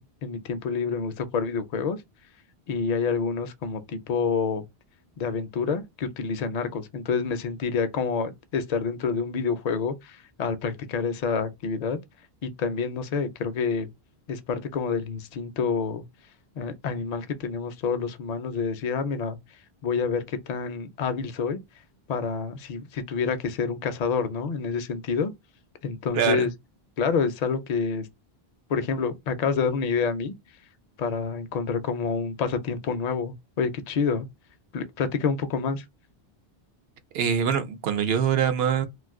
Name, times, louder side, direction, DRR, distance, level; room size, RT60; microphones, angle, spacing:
voice 1, 0.0-2.0 2.7-4.7 5.2-12.0 12.4-13.9 14.3-16.0 16.6-19.4 19.8-21.6 22.1-25.3 25.8-26.5 27.0-28.1 28.7-30.3 31.0-34.3 34.7-35.8, left 5 dB, 55° left, 0.5 m, -28 dB
voice 2, 26.1-26.5 37.1-38.9, right 7 dB, 75° right, 0.8 m, -24 dB
2.5 x 2.3 x 3.5 m
omnidirectional pair, 1.0 m